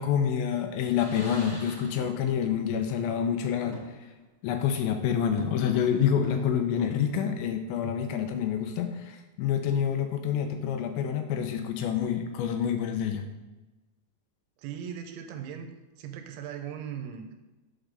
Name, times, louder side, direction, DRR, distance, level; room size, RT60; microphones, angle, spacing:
voice 1, 0.0-3.8 4.4-13.2, left 8 dB, 80° left, 6 dB, 2.9 m, -27 dB
sound 1, 0.9-2.5 2.8-2.9 3.7-4.2 4.6-4.7 5.4-7.4, left 2 dB, 45° left, 1.0 m, -46 dB
voice 2, 14.6-15.7 16.0-17.3, right 8 dB, 85° right, 5 dB, 3.1 m, -38 dB
8.1 x 3.8 x 6.5 m, 1.1 s
omnidirectional pair, 5.4 m